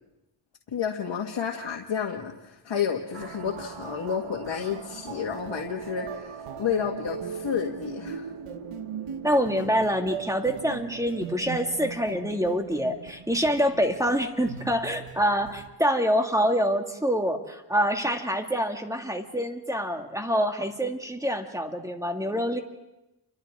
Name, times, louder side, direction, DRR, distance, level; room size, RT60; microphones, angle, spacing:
voice 1, 0.7-8.3, left 7 dB, 60° left, 0 dB, 1.9 m, -31 dB
sound 1, 3.1-15.7, right 7 dB, 85° right, 1.2 m, -39 dB
voice 2, 9.2-22.6, equal, 5° right, 4 dB, 2.3 m, -26 dB
29.5 x 24.5 x 3.7 m, 0.95 s
cardioid pair, 75°, 49 cm